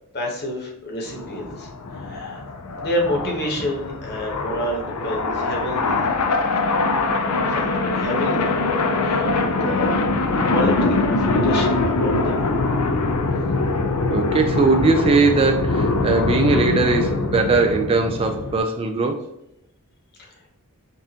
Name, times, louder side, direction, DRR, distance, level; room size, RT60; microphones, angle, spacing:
voice 1, 0.1-2.4 2.7-6.1 7.2-10.0 10.5-12.5 20.2-20.3, equal, 45° left, 0 dB, 1.1 m, -29 dB
sound 1, 1.1-18.6, left 3 dB, 80° left, 0.5 m, -23 dB
voice 2, 14.1-19.2, right 3 dB, 25° right, 5 dB, 0.3 m, -20 dB
5.4 x 2.5 x 2.8 m, 0.81 s
head